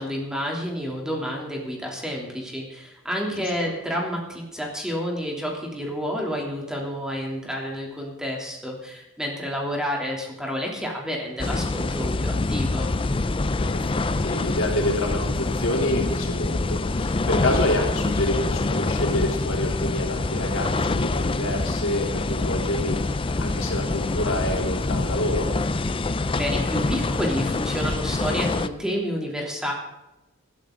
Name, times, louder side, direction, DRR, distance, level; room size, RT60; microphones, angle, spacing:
voice 1, 0.0-12.9 26.4-29.7, equal, 5° right, -1 dB, 3.1 m, -29 dB
sound 1, 11.4-28.7, left 2 dB, 25° left, 0.5 m, -25 dB
voice 2, 13.6-25.5, left 1 dB, 85° left, 0 dB, 3.4 m, -28 dB
20.0 x 12.5 x 3.9 m, 0.95 s
head